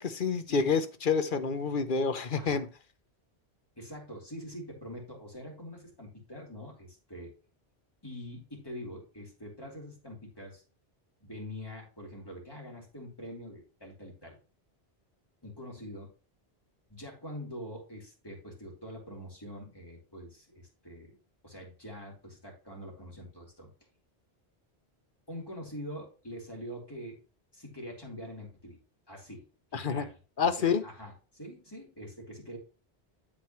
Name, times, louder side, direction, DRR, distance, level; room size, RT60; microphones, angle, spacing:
voice 1, 0.0-2.7 29.7-30.0 30.4-30.8, left 5 dB, 55° left, 11 dB, 0.9 m, -28 dB
voice 2, 3.8-7.3 8.0-10.6 11.2-14.4 15.4-16.1 16.9-21.2 21.4-23.7 25.3-27.2 27.5-28.8 29.1-32.6, equal, 20° left, -2 dB, 4.0 m, -44 dB
13.0 x 4.7 x 3.1 m, 0.35 s
omnidirectional pair, 1.1 m